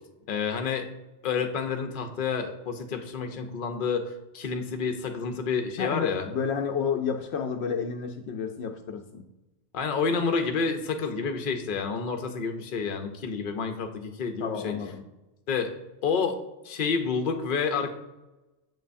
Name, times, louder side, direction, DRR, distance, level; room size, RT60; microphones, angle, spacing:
voice 1, 0.3-0.9 1.2-6.3 9.7-14.7 15.5-15.7 16.0-16.4 16.6-17.9, left 5 dB, 55° left, 6 dB, 0.8 m, -29 dB
voice 2, 5.8-9.3 14.4-15.0, left 6 dB, 80° left, 4 dB, 0.8 m, -31 dB
7.4 x 5.4 x 2.6 m, 1.0 s
omnidirectional pair, 1.1 m